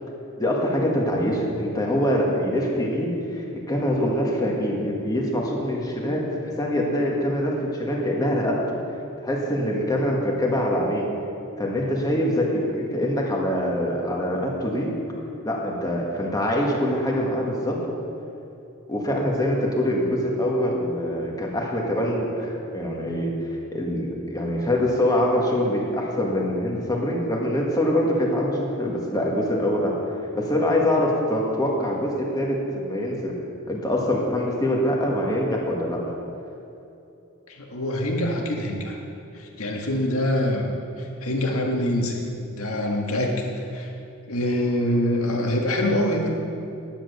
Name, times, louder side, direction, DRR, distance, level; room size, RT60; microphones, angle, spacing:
voice 1, 0.4-6.3 6.6-8.8 9.2-11.1 11.6-14.9 15.4-17.8 18.9-29.9 30.3-33.3 33.7-36.1, equal, 20° left, -2 dB, 1.7 m, -24 dB
voice 2, 37.5-39.0 39.6-40.7 41.2-42.2 42.5-43.4 43.7-43.9 44.3-46.3, left 1 dB, 80° left, 0 dB, 1.8 m, -24 dB
10.5 x 8.8 x 6.7 m, 2.7 s
head